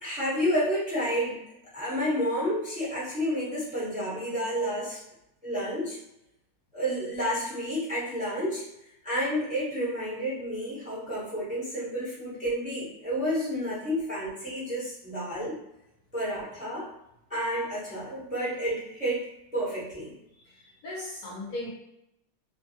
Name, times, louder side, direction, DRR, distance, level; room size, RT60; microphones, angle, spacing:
voice 1, 0.0-1.4 1.7-5.0 5.4-6.0 6.7-8.6 9.0-15.5 16.1-16.9 17.3-19.2 19.5-20.1, equal, 5° right, -10 dB, 0.7 m, -30 dB
voice 2, 20.3-21.7, left 2 dB, 70° left, -5 dB, 0.9 m, -38 dB
2.9 x 2.3 x 2.7 m, 0.83 s
omnidirectional pair, 1.9 m